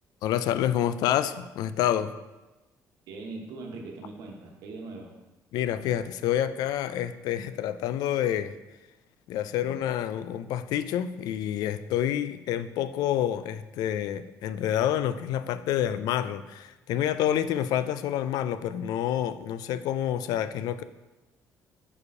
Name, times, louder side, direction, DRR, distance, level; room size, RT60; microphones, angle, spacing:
voice 1, 0.2-2.1 5.5-8.6 9.3-20.8, left 11 dB, 80° left, 13 dB, 0.3 m, -28 dB
voice 2, 3.1-5.1 9.5-9.7, right 3 dB, 80° right, 1 dB, 1.2 m, -41 dB
4.9 x 4.8 x 4.7 m, 1.1 s
cardioid pair, 155°, 7 cm